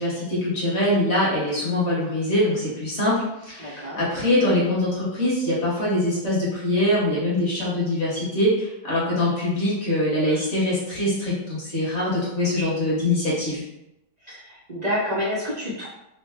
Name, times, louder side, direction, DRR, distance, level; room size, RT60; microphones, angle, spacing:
voice 1, 0.0-13.6, left 1 dB, 45° left, -7 dB, 1.5 m, -23 dB
voice 2, 3.6-4.0 10.2-10.5 14.2-15.9, equal, 55° right, -8 dB, 0.4 m, -29 dB
3.6 x 2.1 x 3.4 m, 0.88 s
omnidirectional pair, 1.9 m